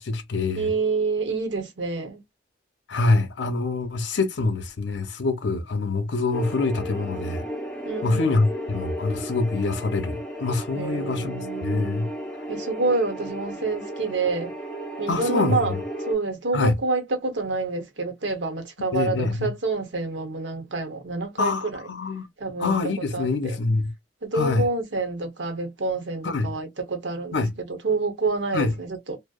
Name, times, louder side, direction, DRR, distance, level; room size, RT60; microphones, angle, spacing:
voice 1, 0.0-0.7 2.9-7.4 8.0-12.1 15.1-15.8 16.5-16.7 18.9-19.5 21.4-22.3 22.6-23.9 24.3-24.6 26.2-26.5 27.3-27.5 28.5-28.7, left 3 dB, 70° left, 0.6 m, -25 dB
voice 2, 0.5-2.2 7.8-8.3 10.7-12.0 12.5-14.5 15.0-15.8 16.1-21.9 22.4-22.7 23.1-23.6 24.2-27.4 27.7-29.2, right 3 dB, 75° right, 0.8 m, -28 dB
sound 1, 6.3-16.1, equal, 5° left, 0.7 m, -34 dB
2.7 x 2.0 x 2.2 m
head